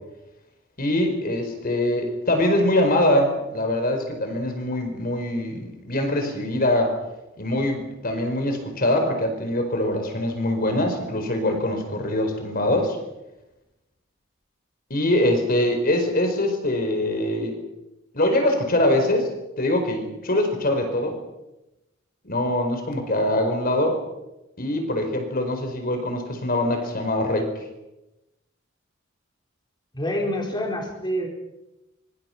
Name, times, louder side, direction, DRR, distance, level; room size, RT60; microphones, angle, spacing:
voice 1, 0.8-6.9 7.4-13.0 14.9-17.6 18.1-19.3 19.6-21.1 22.2-24.0 24.6-27.5, left 1 dB, 50° left, 5 dB, 4.6 m, -23 dB
voice 2, 29.9-31.3, equal, 25° left, 0 dB, 4.3 m, -27 dB
25.5 x 24.5 x 5.9 m, 0.97 s
head